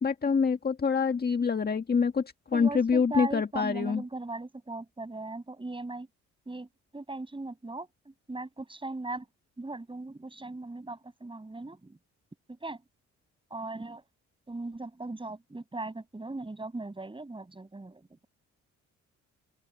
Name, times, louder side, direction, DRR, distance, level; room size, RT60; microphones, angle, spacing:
voice 1, 0.0-4.0, left 5 dB, 30° left, 1.7 m, -26 dB
voice 2, 2.5-6.1 6.5-9.3 9.6-12.0 12.5-12.8 13.5-14.0 14.5-18.3, right 2 dB, 15° right, 6.9 m, -39 dB
open air
cardioid pair, 90°, 30 cm